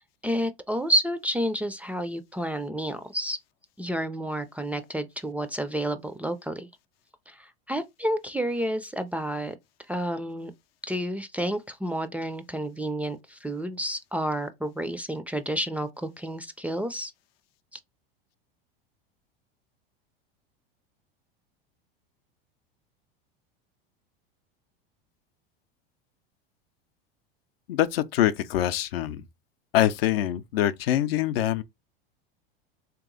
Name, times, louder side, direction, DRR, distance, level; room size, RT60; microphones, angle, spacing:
voice 1, 0.2-3.4 3.8-6.7 7.3-9.6 9.9-10.5 10.9-17.1, right 1 dB, 5° right, 0.3 m, -30 dB
voice 2, 27.7-29.3 29.7-31.6, left 12 dB, 80° left, 0.5 m, -24 dB
3.4 x 2.9 x 3.7 m
hypercardioid pair, 105°, 29 cm